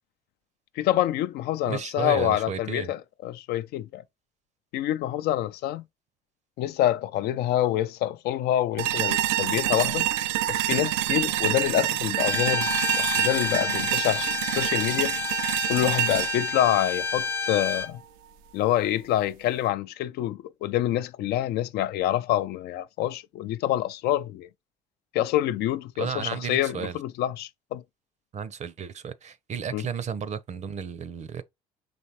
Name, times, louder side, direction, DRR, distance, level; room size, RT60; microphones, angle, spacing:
voice 1, 0.8-4.0 4.7-5.8 6.6-10.1 10.5-12.7 13.0-15.1 15.7-18.0 18.5-24.5 25.1-27.8 29.7-29.8, left 13 dB, 65° left, 0.4 m, -26 dB
voice 2, 1.7-2.9 26.0-27.0 28.3-31.4, right 7 dB, 40° right, 0.7 m, -33 dB
sound 1, 8.8-17.8, right 13 dB, 85° right, 0.4 m, -27 dB
Bowed string instrument, 12.2-17.9, left 5 dB, 10° left, 0.5 m, -30 dB
4.2 x 3.2 x 2.9 m
supercardioid pair, 75°, 18 cm